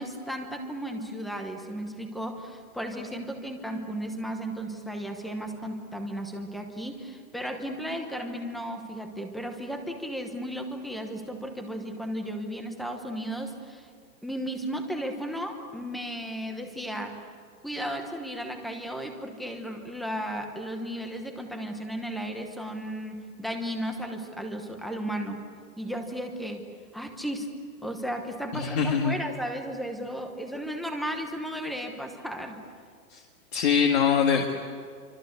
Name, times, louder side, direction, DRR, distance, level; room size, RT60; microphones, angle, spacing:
voice 1, 0.0-13.9 14.2-17.2 17.6-25.4 25.8-26.7 26.9-27.5 27.8-32.6, equal, ahead, 4 dB, 1.0 m, -34 dB
voice 2, 28.5-29.2 33.1-33.2 33.5-34.5, left 7 dB, 40° left, 3 dB, 2.0 m, -23 dB
28.0 x 25.0 x 8.1 m, 2.2 s
hypercardioid pair, 170°, 46 cm